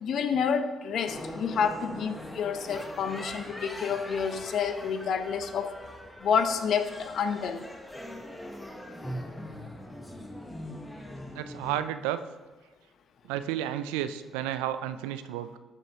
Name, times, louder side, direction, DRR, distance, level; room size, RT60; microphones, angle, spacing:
voice 1, 0.0-5.7 6.2-7.6, left 6 dB, 65° left, 9 dB, 0.7 m, -29 dB
sound 1, 1.1-11.8, left 1 dB, 15° left, 1.2 m, -41 dB
voice 2, 11.3-12.2 13.3-15.6, right 11 dB, 85° right, 12 dB, 0.4 m, -32 dB
12.5 x 5.4 x 2.8 m, 1.2 s
hypercardioid pair, 55°, 0 cm